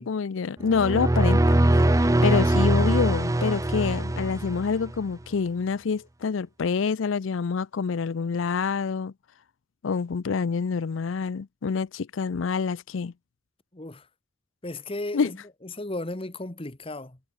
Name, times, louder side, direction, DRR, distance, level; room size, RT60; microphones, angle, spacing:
voice 1, 0.0-1.6 2.0-9.1 9.8-13.1 15.1-15.3, left 5 dB, 75° left, 0.5 m, -27 dB
sound 1, 0.6-5.0, right 1 dB, 15° right, 0.6 m, -22 dB
voice 2, 13.7-14.1 14.6-17.2, left 2 dB, 30° left, 1.3 m, -35 dB
head